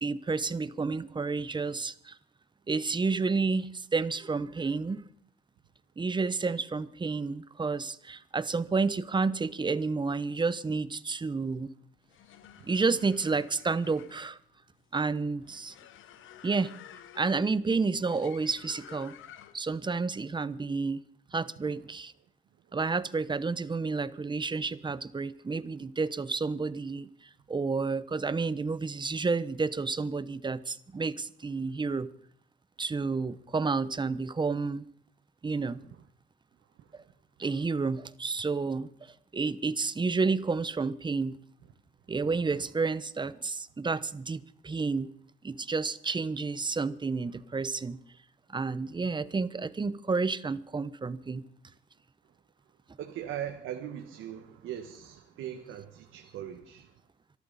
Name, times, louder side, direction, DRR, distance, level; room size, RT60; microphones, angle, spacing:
voice 1, 0.0-2.1 2.7-5.0 6.0-11.7 12.6-14.4 14.9-15.7 16.4-16.7 17.2-19.1 19.5-21.0 21.3-22.1 22.7-32.1 32.8-34.9 35.4-35.8 37.4-41.4 42.1-45.1 45.4-48.0 48.5-51.4, right 4 dB, 25° right, 0.8 m, -30 dB
sound 1, 11.9-19.8, left 11 dB, 80° left, 1.1 m, -52 dB
voice 2, 42.2-42.6 53.0-57.0, right 10 dB, 85° right, 1.4 m, -41 dB
25.5 x 11.5 x 4.1 m
cardioid pair, 90°, 20 cm